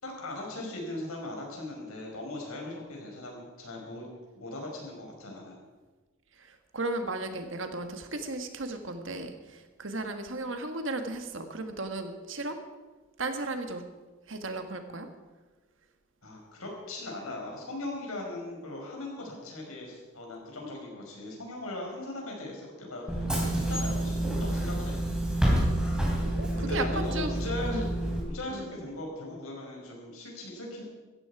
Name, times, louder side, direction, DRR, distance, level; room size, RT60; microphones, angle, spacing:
voice 1, 0.0-4.1 4.4-5.7 16.2-24.9 25.3-25.5 26.5-27.8 28.3-30.8, left 2 dB, 85° left, 0 dB, 5.1 m, -39 dB
voice 2, 6.4-12.6 13.2-13.8 14.3-15.1 26.3-27.4 27.6-27.9 28.5-28.7, right 2 dB, 65° right, 6 dB, 1.7 m, -35 dB
Bus / Engine, 23.1-28.2, right 1 dB, 5° right, 3.4 m, -28 dB
16.0 x 14.5 x 4.9 m, 1.3 s
head